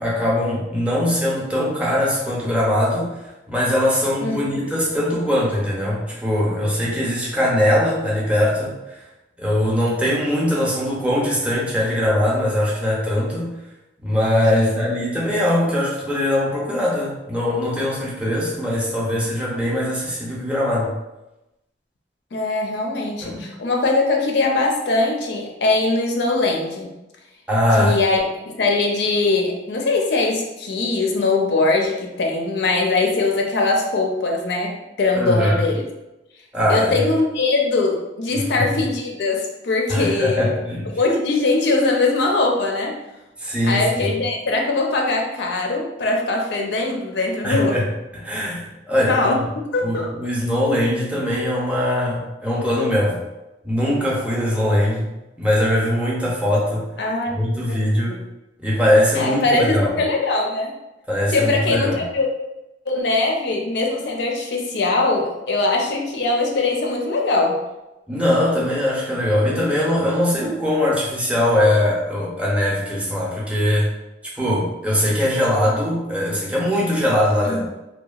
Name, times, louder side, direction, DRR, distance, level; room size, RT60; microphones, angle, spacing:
voice 1, 0.0-3.2 3.5-9.0 9.4-13.5 14.0-20.9 23.2-23.4 27.5-28.0 35.1-35.7 36.5-37.0 38.3-38.7 39.9-40.9 43.4-43.9 47.4-47.8 48.1-49.5 49.8-53.2 53.6-55.1 55.4-56.9 57.4-58.2 58.6-60.0 61.1-62.1 68.1-73.9 74.4-77.6, left 1 dB, 5° right, -5 dB, 0.5 m, -21 dB
voice 2, 4.2-4.6 14.5-14.8 19.1-19.2 22.3-26.9 27.8-35.8 36.7-40.5 41.0-43.0 43.6-47.8 49.1-49.4 49.7-50.1 57.0-57.4 57.7-57.8 58.0-58.2 59.2-60.7 61.3-62.3 62.9-67.6 77.4-77.6, left 3 dB, 65° left, 0 dB, 0.4 m, -21 dB
2.8 x 2.2 x 2.3 m, 0.96 s
head